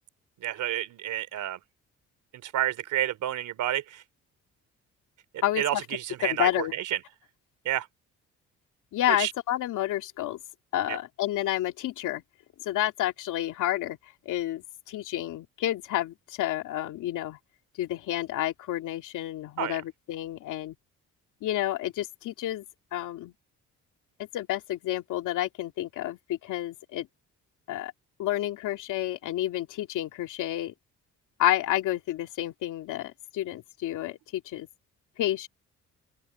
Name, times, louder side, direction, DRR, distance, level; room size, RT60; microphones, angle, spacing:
voice 1, 0.4-1.6 2.4-4.0 5.3-7.0 7.6-7.9 9.1-9.3 10.9-11.0 19.6-19.8, right 12 dB, 80° right, 3.2 m, -30 dB
voice 2, 5.4-5.8 6.2-6.7 8.9-10.4 10.7-12.2 12.6-14.0 14.3-17.4 17.8-20.7 21.4-22.6 22.9-23.3 24.2-27.1 27.7-27.9 28.2-30.7 31.4-34.7 35.2-35.5, left 13 dB, 85° left, 2.6 m, -30 dB
open air
cardioid pair, 90°, 30 cm